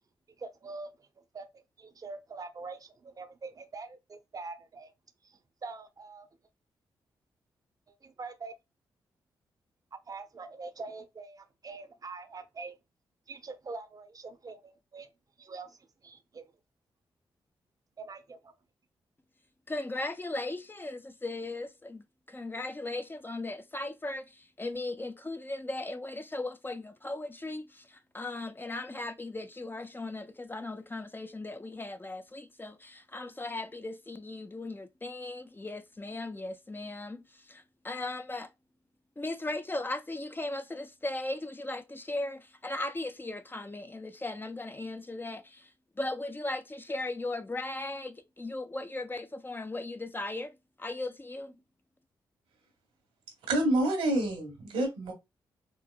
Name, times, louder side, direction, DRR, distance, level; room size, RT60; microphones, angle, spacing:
voice 1, 0.4-1.1 1.3-4.9 5.2-6.3 7.9-8.5 9.9-12.8 13.3-15.1 15.4-16.5 18.0-18.5, right 3 dB, 40° right, 0.7 m, -44 dB
voice 2, 19.7-38.5 39.2-51.5, left 2 dB, 20° left, 0.5 m, -37 dB
voice 3, 53.5-55.1, right 1 dB, 90° right, 1.3 m, -27 dB
4.5 x 2.0 x 2.3 m
supercardioid pair, 45°, 10 cm